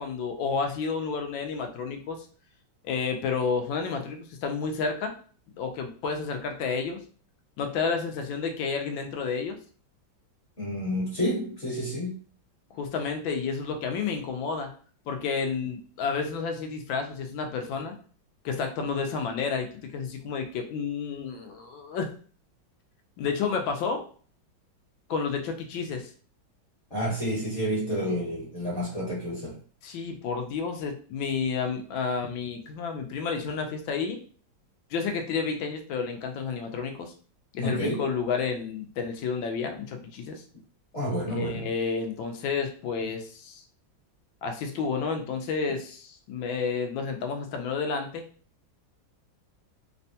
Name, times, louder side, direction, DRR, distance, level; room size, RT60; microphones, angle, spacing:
voice 1, 0.0-2.3 2.8-5.1 5.6-7.0 7.6-9.6 12.7-14.7 15.1-18.0 18.4-22.1 23.2-24.0 25.1-26.1 29.8-34.2 34.9-37.1 37.5-40.4 41.3-43.6 44.4-48.2, left 5 dB, 80° left, 5 dB, 1.3 m, -30 dB
voice 2, 10.6-12.2 26.9-29.6 37.6-38.1 40.9-41.7, equal, 40° left, -6 dB, 1.3 m, -29 dB
3.4 x 2.2 x 2.7 m, 0.42 s
omnidirectional pair, 2.2 m